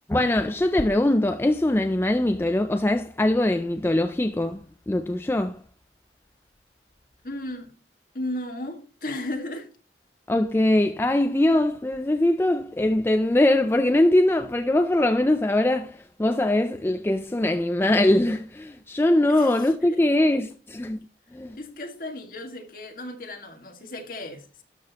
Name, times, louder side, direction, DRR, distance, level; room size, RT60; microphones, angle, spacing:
voice 1, 0.1-4.6 4.9-5.6 10.3-21.0 21.3-21.6, left 1 dB, 15° left, 0.3 m, -22 dB
voice 2, 7.2-7.7 8.1-9.7 19.3-20.0 20.4-20.5 21.5-24.5, left 1 dB, 50° left, 1.7 m, -35 dB
12.5 x 6.0 x 2.9 m
head